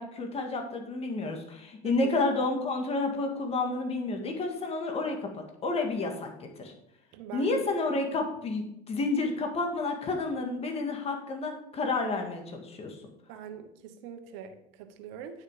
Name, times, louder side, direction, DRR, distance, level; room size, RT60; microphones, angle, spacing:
voice 1, 0.0-6.7 7.3-13.0, left 3 dB, 35° left, 3 dB, 1.9 m, -30 dB
voice 2, 1.8-2.1 7.1-7.6 13.3-15.4, right 8 dB, 75° right, 8 dB, 1.2 m, -43 dB
10.0 x 6.4 x 4.9 m, 0.81 s
supercardioid pair, 100°, 17 cm